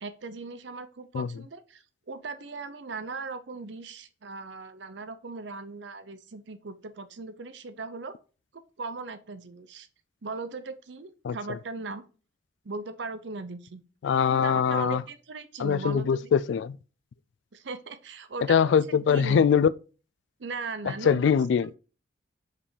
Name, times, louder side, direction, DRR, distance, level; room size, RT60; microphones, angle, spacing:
voice 1, 0.0-8.1 8.5-9.9 10.2-12.0 12.6-13.8 14.2-16.3 17.5-18.7 19.1-19.5 20.4-21.3, right 4 dB, 70° right, 0.7 m, -38 dB
voice 2, 14.0-15.0 15.6-16.8 18.5-19.7 21.1-21.8, left 7 dB, 75° left, 0.3 m, -22 dB
5.3 x 5.1 x 4.9 m
head